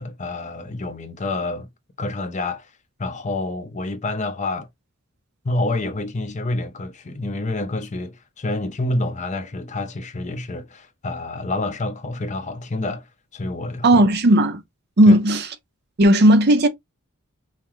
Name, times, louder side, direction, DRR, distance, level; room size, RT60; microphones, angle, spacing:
voice 1, 0.0-1.7 2.0-2.7 3.0-4.7 5.4-13.1 13.3-14.0 15.1-15.2, left 2 dB, 35° left, 0.6 m, -28 dB
voice 2, 13.8-14.6 15.0-15.5 16.0-16.7, right 1 dB, 50° right, 0.6 m, -14 dB
5.6 x 2.1 x 3.1 m
head